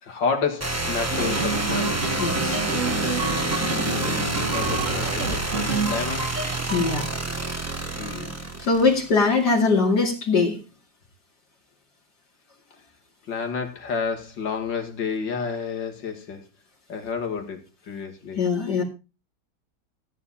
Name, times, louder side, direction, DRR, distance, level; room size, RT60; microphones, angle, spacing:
voice 1, 0.0-2.4 3.6-6.4 8.0-8.3 13.3-16.5 16.9-18.4, left 5 dB, 85° left, 2.7 m, -30 dB
sound 1, 0.6-9.3, right 2 dB, 10° right, 1.1 m, -28 dB
sound 2, 1.1-7.1, right 3 dB, 45° right, 2.3 m, -28 dB
voice 2, 2.2-2.6 6.7-7.1 8.7-10.6 18.4-18.8, left 4 dB, 65° left, 2.9 m, -21 dB
14.5 x 9.7 x 4.2 m
omnidirectional pair, 1.9 m